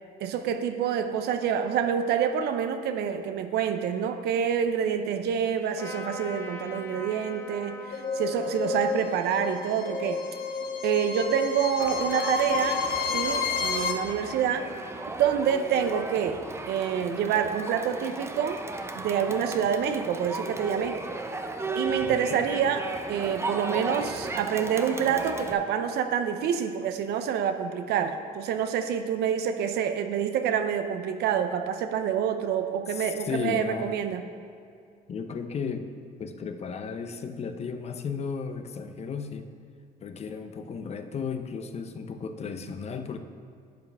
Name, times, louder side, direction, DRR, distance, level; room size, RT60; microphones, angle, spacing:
voice 1, 0.2-10.2 10.8-14.7 15.2-16.4 16.7-18.6 18.9-21.0 21.8-34.2, right 8 dB, 75° right, 8 dB, 0.7 m, -27 dB
Trumpet, 5.8-11.3, left 4 dB, 15° left, 1.4 m, -43 dB
sound 1, 7.9-13.9, left 5 dB, 65° left, 1.0 m, -30 dB
Crowd, 11.8-25.5, right 2 dB, 15° right, 0.7 m, -36 dB
voice 2, 22.0-22.4 32.9-33.9 35.1-35.9 36.2-39.5 40.0-43.2, left 5 dB, 40° left, 8 dB, 0.7 m, -34 dB
11.5 x 8.1 x 3.5 m, 2.3 s
cardioid pair, 110°, 17 cm